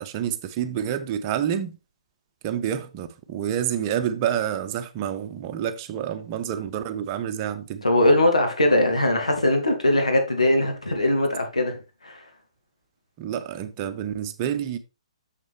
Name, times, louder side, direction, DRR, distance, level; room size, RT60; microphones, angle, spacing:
voice 1, 0.0-1.8 2.4-7.8 13.2-14.8, right 9 dB, 30° right, 0.9 m, -28 dB
voice 2, 7.8-11.8 12.0-12.2, left 1 dB, 80° left, 2.0 m, -20 dB
6.7 x 6.5 x 3.4 m
figure-of-eight pair, 125°, 3 cm